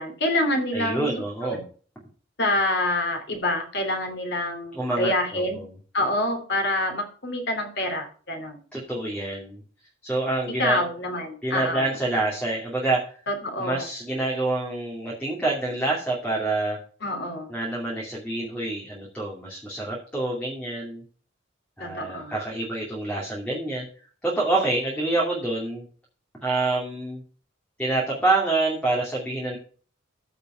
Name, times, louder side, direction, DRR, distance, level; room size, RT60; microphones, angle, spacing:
voice 1, 0.0-1.1 1.4-1.6 2.4-5.7 5.9-8.6 10.6-11.8 13.3-13.9 17.0-17.5 21.8-22.3, left 1 dB, 55° left, 5 dB, 2.8 m, -27 dB
voice 2, 0.7-1.7 4.7-5.7 8.7-9.6 10.0-10.8 11.4-13.1 13.6-16.8 17.5-21.0 21.8-23.9 24.2-25.8 26.4-27.2 27.8-29.6, right 2 dB, 5° left, -4 dB, 2.6 m, -27 dB
14.5 x 5.3 x 5.6 m, 0.43 s
head